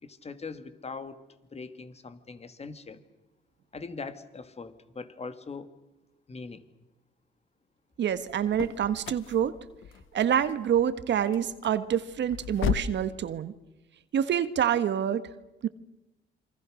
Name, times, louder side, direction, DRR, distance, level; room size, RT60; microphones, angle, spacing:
voice 1, 0.0-1.2 1.5-3.0 3.7-5.8 6.3-6.6, left 4 dB, 30° left, 11 dB, 2.3 m, -41 dB
voice 2, 8.0-9.6 10.1-13.5 14.1-15.2 15.6-15.7, right 9 dB, 65° right, 12 dB, 1.4 m, -27 dB
sound 1, 8.1-13.1, left 9 dB, 85° left, 1.0 m, -36 dB
28.0 x 25.0 x 6.4 m, 1.0 s
cardioid pair, 90°, 20 cm